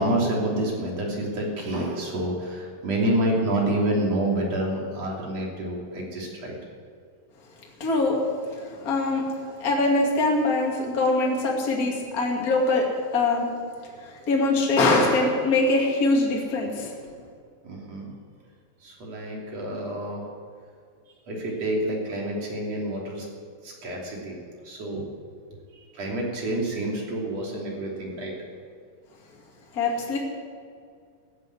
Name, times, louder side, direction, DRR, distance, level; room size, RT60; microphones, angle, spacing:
voice 1, 0.0-6.5 17.7-18.1 18.8-20.3 21.3-23.3 23.6-24.4 24.6-25.1 25.9-28.3, right 1 dB, 50° right, -2 dB, 4.0 m, -28 dB
voice 2, 7.8-8.2 8.5-12.9 13.1-13.5 14.0-16.9 29.7-30.2, left 2 dB, 30° left, -1 dB, 2.5 m, -23 dB
15.0 x 9.3 x 9.6 m, 2.2 s
omnidirectional pair, 4.0 m